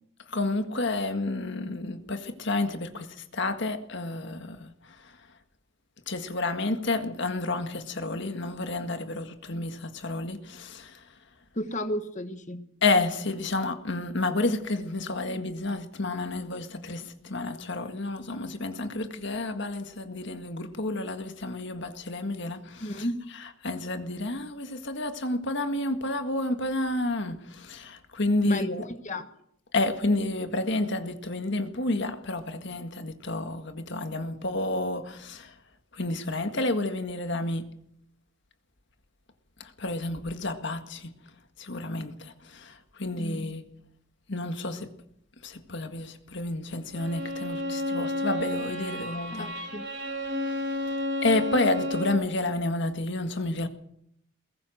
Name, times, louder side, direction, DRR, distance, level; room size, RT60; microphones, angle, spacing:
voice 1, 0.3-4.7 5.0-5.1 6.1-11.0 12.8-23.0 23.6-28.8 29.7-35.5 35.9-37.6 39.6-41.1 41.6-43.6 44.3-44.9 45.4-49.5 50.4-53.7, left 2 dB, 55° left, 1.8 m, -30 dB
voice 2, 11.5-12.7 22.8-23.2 28.4-28.7 29.0-29.3 43.2-43.4 49.3-49.9, left 1 dB, 35° left, 1.4 m, -33 dB
Bowed string instrument, 46.9-52.3, left 1 dB, 50° right, 4.0 m, -31 dB
21.5 x 18.5 x 6.5 m
head